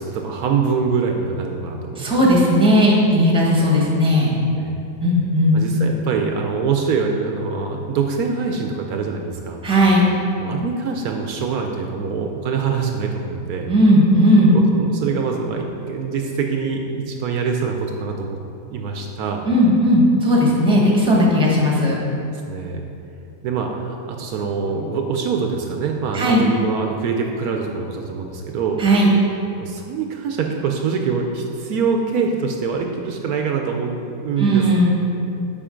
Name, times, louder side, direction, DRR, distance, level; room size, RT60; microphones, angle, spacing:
voice 1, 0.0-2.4 4.6-4.8 5.5-9.6 10.4-13.7 14.5-18.4 18.7-19.5 22.3-22.8 23.4-28.9 29.6-34.7, right 5 dB, 70° right, 3 dB, 1.0 m, -24 dB
voice 2, 2.0-4.4 5.0-5.6 9.6-10.1 13.7-14.5 19.5-22.0 26.1-26.4 28.8-29.1 34.4-34.9, equal, 5° right, -3 dB, 1.0 m, -16 dB
7.6 x 5.0 x 5.0 m, 2.7 s
omnidirectional pair, 1.7 m